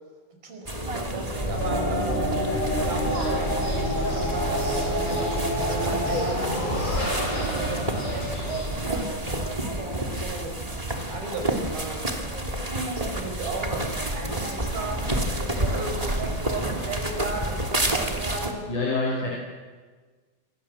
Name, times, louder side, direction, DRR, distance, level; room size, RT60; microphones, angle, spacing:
voice 1, 0.4-2.4 2.8-10.6 11.0-12.1 12.7-18.6, right 3 dB, 75° right, 4 dB, 6.5 m, -36 dB
sound 1, 0.7-18.5, right 1 dB, 10° right, 2.5 m, -30 dB
sound 2, 1.4-9.5, equal, 10° left, 5.2 m, -28 dB
Bird, 3.1-9.1, left 2 dB, 35° left, 7.3 m, -40 dB
voice 2, 18.7-19.3, left 2 dB, 55° left, -2 dB, 6.7 m, -26 dB
28.0 x 25.5 x 7.7 m, 1.4 s
omnidirectional pair, 4.2 m